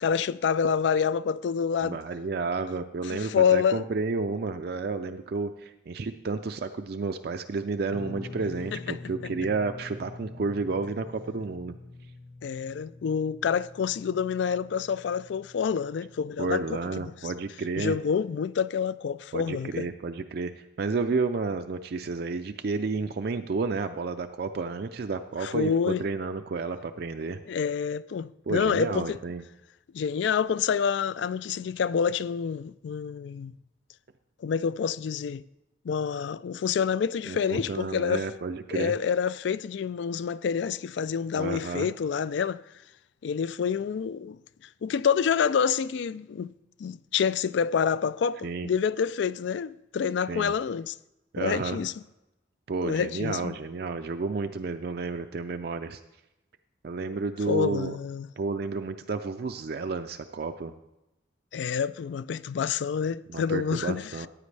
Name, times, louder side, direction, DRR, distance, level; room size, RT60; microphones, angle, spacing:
voice 1, 0.0-2.0 3.1-3.8 8.7-9.0 9.2-9.3 12.4-17.3 17.8-19.9 25.4-26.0 27.5-29.2 29.9-33.5 34.4-35.4 35.8-38.3 38.7-42.6 43.2-44.4 44.8-46.5 46.8-50.9 51.4-51.9 52.9-53.5 57.5-58.3 61.5-64.3, left 6 dB, 70° left, 0.3 m, -27 dB
voice 2, 1.8-11.7 16.4-17.9 19.3-20.5 20.8-27.4 28.5-29.4 37.3-38.9 41.3-41.9 48.4-48.7 50.3-50.5 51.3-51.8 52.7-56.0 56.8-58.0 58.4-60.7 63.3-64.3, right 4 dB, 55° right, 0.4 m, -31 dB
Guitar, 7.9-17.2, left 3 dB, 85° left, 0.9 m, -45 dB
14.5 x 9.1 x 3.3 m
head